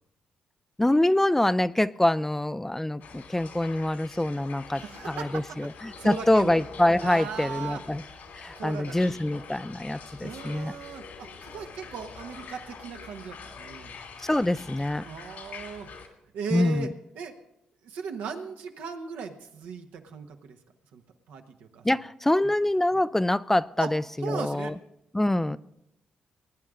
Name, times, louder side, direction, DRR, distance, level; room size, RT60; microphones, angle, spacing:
voice 1, 0.8-8.0 8.4-10.7 14.2-15.1 16.5-16.9 21.8-24.7 25.1-25.6, left 1 dB, 10° left, 16 dB, 0.4 m, -25 dB
sound 1, 3.0-16.1, left 5 dB, 75° left, 2.5 m, -45 dB
voice 2, 4.7-5.3 6.0-6.6 7.0-7.8 8.6-8.9 10.2-13.9 15.0-15.9 16.3-16.9 17.2-17.3 17.8-20.6 20.9-21.0 21.3-21.8 23.8-23.9 24.2-24.7, right 6 dB, 85° right, 4 dB, 1.2 m, -37 dB
19.5 x 9.7 x 3.7 m, 0.81 s
supercardioid pair, 60°, 3 cm